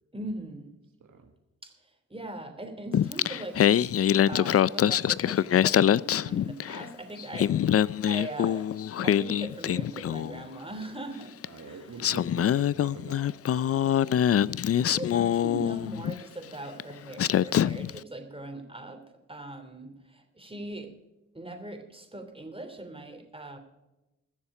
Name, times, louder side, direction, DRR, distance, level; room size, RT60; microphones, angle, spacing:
voice 1, 0.1-0.7 1.6-3.6 4.3-8.7 9.0-11.4 11.7-11.8 14.8-20.9 21.3-23.6, right 1 dB, 15° right, 6 dB, 3.1 m, -40 dB
voice 2, 1.0-1.3 11.4-14.3, right 5 dB, 70° right, 5 dB, 1.5 m, -45 dB
Singing, 2.9-6.9 7.2-10.4 11.4-11.5 12.0-16.2 16.8-16.9 17.2-18.0, left 10 dB, 50° left, 0.4 m, -24 dB
21.5 x 7.2 x 4.9 m, 0.99 s
cardioid pair, 65°, 31 cm